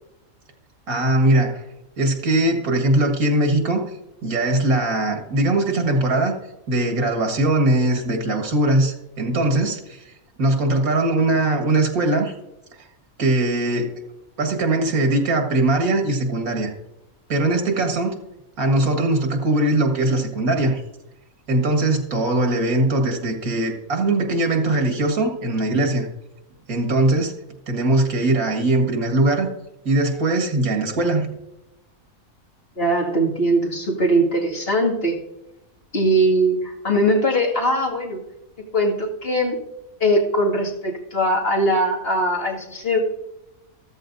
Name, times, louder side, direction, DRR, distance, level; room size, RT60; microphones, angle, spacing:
voice 1, 0.9-1.6 2.0-3.9 4.2-6.4 6.7-10.1 10.4-12.3 13.2-13.9 14.4-16.7 17.3-18.2 18.6-20.8 21.5-26.1 26.7-27.3 27.7-29.5 29.9-31.3, right 2 dB, 85° right, 3 dB, 2.2 m, -20 dB
voice 2, 32.8-35.2 35.9-38.2 38.7-39.6 40.0-43.0, right 1 dB, 40° left, -1 dB, 2.3 m, -20 dB
14.5 x 14.0 x 2.6 m, 0.90 s
omnidirectional pair, 1.5 m